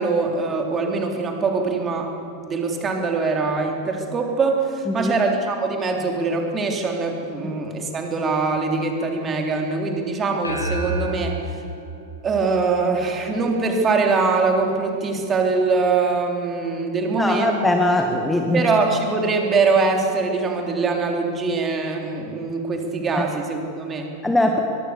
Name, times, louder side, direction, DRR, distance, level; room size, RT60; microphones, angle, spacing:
voice 1, 0.0-2.1 2.4-11.4 12.2-17.6 18.5-24.1, right 4 dB, 20° right, 2 dB, 3.5 m, -23 dB
sound 1, 10.4-13.1, equal, 80° left, 2.8 m, -30 dB
voice 2, 17.2-18.7 23.1-23.3 24.2-24.6, left 1 dB, 5° left, 3 dB, 1.7 m, -21 dB
23.0 x 21.5 x 7.0 m, 2.5 s
figure-of-eight pair, 90°, 0 cm